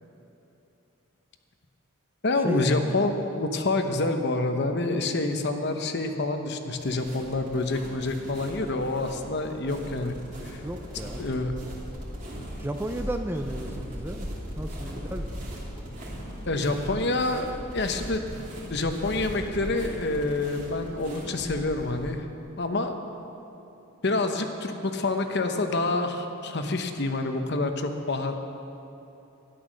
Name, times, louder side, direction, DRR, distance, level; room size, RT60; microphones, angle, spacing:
voice 1, 2.2-10.1 10.4-10.6 11.2-11.6 16.5-17.5 17.7-18.2 18.7-22.3 22.6-22.9 24.0-28.3, left 2 dB, 50° left, 6 dB, 0.9 m, -27 dB
sound 1, 6.7-22.1, equal, 35° right, 2.7 m, -38 dB
voice 2, 10.6-11.2 12.6-14.3 14.6-15.4, right 1 dB, 10° right, 6 dB, 0.4 m, -33 dB
13.0 x 11.0 x 6.3 m, 3.0 s
head